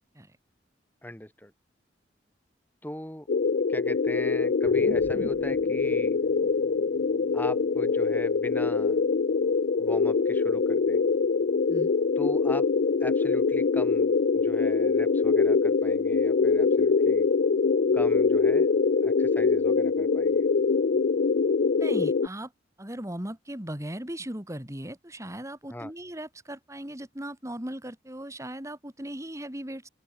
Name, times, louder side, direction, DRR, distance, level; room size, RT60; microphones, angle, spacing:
voice 1, 1.0-1.5 2.8-3.3 3.7-6.2 7.3-9.0 9.8-11.0 12.2-12.7 13.0-17.3 17.9-18.7 19.0-20.4 25.7-25.9, left 1 dB, 10° left, 6.4 m, -40 dB
sound 1, 3.3-22.3, left 4 dB, 60° left, 0.5 m, -24 dB
sound 2, 4.6-9.4, equal, 55° right, 4.7 m, -45 dB
voice 2, 21.8-22.5 22.8-29.9, right 1 dB, 15° right, 3.7 m, -38 dB
open air
head